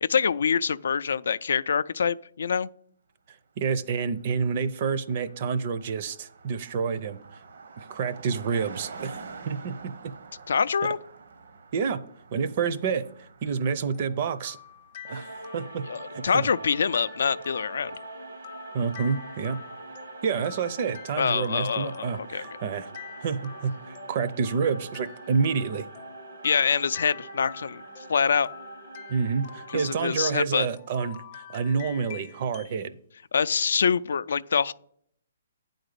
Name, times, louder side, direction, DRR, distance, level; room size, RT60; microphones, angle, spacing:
voice 1, 0.0-2.7 10.5-11.0 15.9-18.0 21.2-22.5 26.4-27.8 28.1-28.5 29.7-30.7 33.3-34.7, left 6 dB, 70° left, 0.3 m, -25 dB
voice 2, 3.6-7.2 7.8-10.1 11.7-12.0 12.3-14.6 15.1-15.8 16.1-16.5 18.7-19.6 20.2-22.9 23.2-25.9 29.1-33.0, right 5 dB, 40° right, 0.5 m, -28 dB
Car passing by, 3.7-3.8 4.0-15.0, right 4 dB, 70° right, 0.9 m, -47 dB
sound 1, 13.9-32.8, left 11 dB, 35° left, 0.6 m, -48 dB
sound 2, 15.1-30.0, right 2 dB, 85° right, 1.5 m, -43 dB
9.0 x 3.9 x 6.6 m
hypercardioid pair, 165°, 0 cm